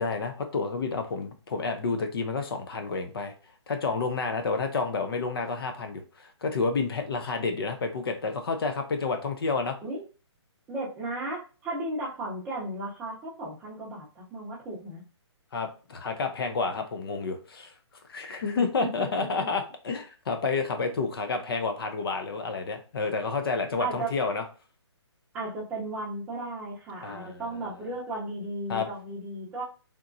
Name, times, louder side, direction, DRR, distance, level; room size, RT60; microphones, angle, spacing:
voice 1, 0.0-3.3 3.7-9.8 15.5-17.7 18.1-24.4 27.0-27.4 28.7-28.9, left 4 dB, 55° left, 6 dB, 0.6 m, -30 dB
voice 2, 10.7-15.0 18.6-19.5 23.8-24.1 25.3-29.6, right 2 dB, 10° right, -5 dB, 0.7 m, -35 dB
3.6 x 2.9 x 2.6 m, 0.35 s
hypercardioid pair, 160°, 15 cm